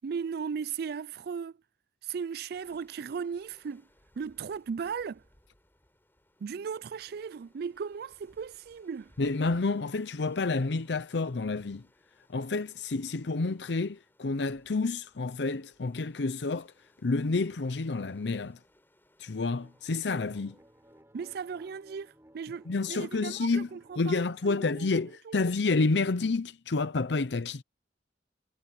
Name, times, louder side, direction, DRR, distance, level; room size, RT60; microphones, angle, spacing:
voice 1, 0.0-1.6 2.0-3.9 4.2-5.2 6.4-9.1 21.1-24.9 25.3-25.4, right 6 dB, 60° right, 0.4 m, -37 dB
sound 1, 2.5-21.0, left 1 dB, 15° left, 5.0 m, -66 dB
voice 2, 9.2-11.9 12.3-16.7 17.0-18.6 19.2-20.6 22.7-23.7 24.0-27.6, left 3 dB, 80° left, 0.7 m, -29 dB
sound 2, 19.5-25.2, right 1 dB, 15° right, 6.0 m, -59 dB
head